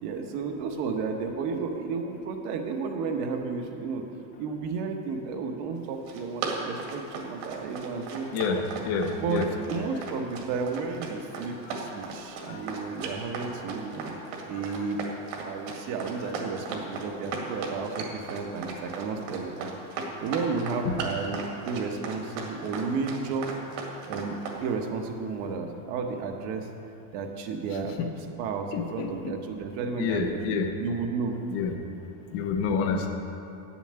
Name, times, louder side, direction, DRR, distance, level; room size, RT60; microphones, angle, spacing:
voice 1, 0.0-4.0 4.4-8.6 9.2-14.1 14.5-15.0 15.4-23.5 24.1-24.3 24.6-26.7 27.1-30.5 30.8-31.4, right 4 dB, 45° right, 4 dB, 1.1 m, -32 dB
Run, 5.9-24.6, right 4 dB, 60° right, 2.1 m, -36 dB
voice 2, 8.3-9.4 12.5-12.6 20.9-21.0 28.7-29.1 30.0-30.7 31.5-31.7 32.3-33.1, left 5 dB, 35° left, 4 dB, 0.7 m, -28 dB
9.1 x 7.2 x 8.7 m, 2.7 s
supercardioid pair, 165°, 41 cm